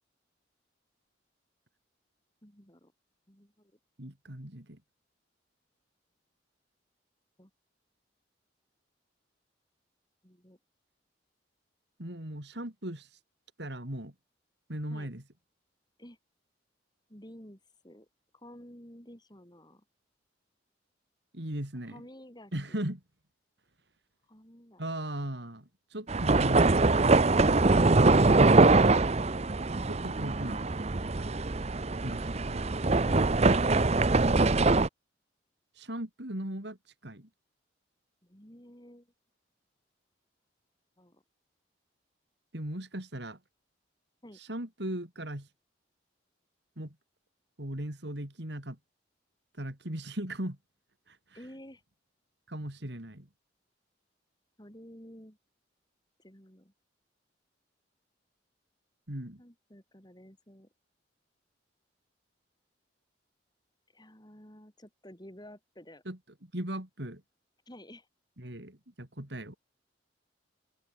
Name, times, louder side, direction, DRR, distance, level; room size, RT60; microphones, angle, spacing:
voice 1, 2.4-2.9 3.3-3.7 7.4-7.5 10.2-10.6 14.9-15.1 16.0-16.2 17.1-18.1 18.3-19.8 21.8-22.8 24.3-24.9 38.2-39.1 41.0-41.2 44.2-44.4 51.3-51.8 54.6-55.4 56.2-56.7 59.4-60.7 63.9-66.0 67.7-68.1, equal, 20° left, 6.6 m, -52 dB
voice 2, 4.0-4.8 12.0-13.1 13.6-14.1 14.7-15.2 21.3-22.0 22.5-23.0 24.8-27.2 29.9-30.6 31.1-31.3 32.0-32.7 35.8-36.8 37.0-37.3 42.5-43.4 44.5-45.5 46.8-47.0 47.6-48.8 49.6-50.6 51.1-51.2 52.5-53.3 59.1-59.4 66.1-67.2 68.4-69.6, right 1 dB, 60° right, 3.7 m, -38 dB
sound 1, 26.1-34.9, right 3 dB, 35° right, 0.7 m, -23 dB
head